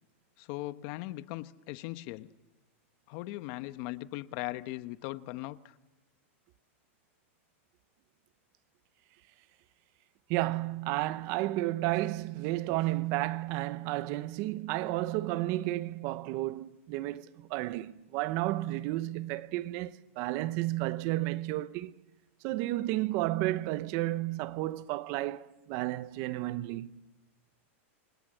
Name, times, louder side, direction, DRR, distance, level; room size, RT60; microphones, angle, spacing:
voice 1, 0.4-2.3 3.1-5.7, left 18 dB, 45° left, 1.0 m, -39 dB
voice 2, 10.3-21.9 22.4-26.9, right 17 dB, 40° right, 0.8 m, -32 dB
28.0 x 25.0 x 7.9 m
supercardioid pair, 150°, 7 cm